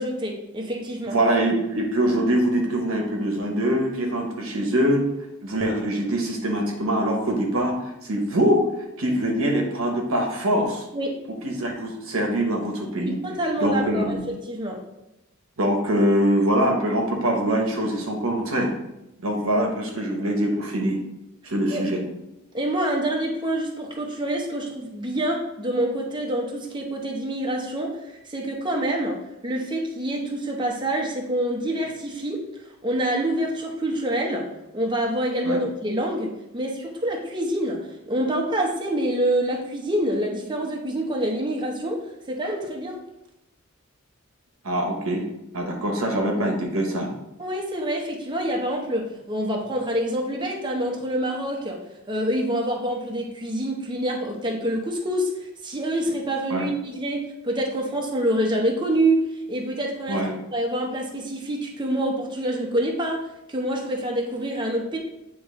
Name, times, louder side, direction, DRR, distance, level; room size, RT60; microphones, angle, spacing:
voice 1, 0.0-1.2 10.9-11.2 13.1-14.2 14.5-14.8 21.7-21.8 22.5-28.0 28.2-32.4 32.8-34.5 34.7-42.0 42.3-43.0 47.4-51.8 52.1-65.0, right 1 dB, 20° right, 0 dB, 0.9 m, -26 dB
voice 2, 1.1-5.1 5.4-8.6 9.0-10.8 11.4-13.2 13.6-14.2 15.6-18.7 19.2-21.0 21.4-22.0 35.4-35.6 44.6-45.2 45.5-47.1 56.5-56.7 60.1-60.3, right 1 dB, 70° right, 1 dB, 1.0 m, -23 dB
8.9 x 3.1 x 3.7 m, 0.90 s
head